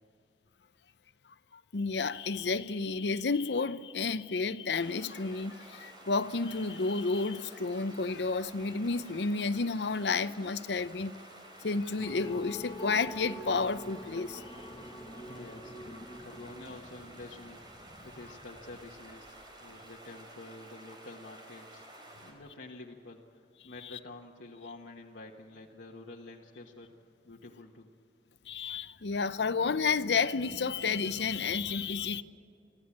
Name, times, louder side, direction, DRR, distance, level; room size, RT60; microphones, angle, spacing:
voice 1, 1.7-11.1 11.6-14.5 28.5-32.2, left 4 dB, 75° left, 0.7 m, -31 dB
sound 1, 4.7-22.3, right 1 dB, 25° right, 4.0 m, -52 dB
sound 2, 12.0-19.5, equal, 20° left, 1.9 m, -46 dB
voice 2, 15.3-17.6 18.0-19.3 19.6-26.9 27.2-27.9, left 2 dB, 90° left, 1.4 m, -48 dB
24.5 x 14.5 x 8.7 m
head